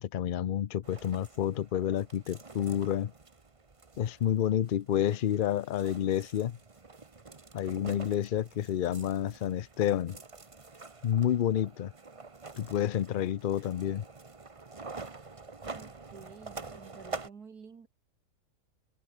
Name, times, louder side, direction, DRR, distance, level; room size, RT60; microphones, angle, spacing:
voice 1, 0.0-3.1 4.0-6.6 7.5-10.2 11.0-11.9 12.6-14.0, left 10 dB, 70° left, 0.5 m, -29 dB
sound 1, 0.8-17.3, right 3 dB, 25° right, 1.1 m, -47 dB
voice 2, 15.7-17.9, right 6 dB, 75° right, 2.6 m, -51 dB
omnidirectional pair, 1.7 m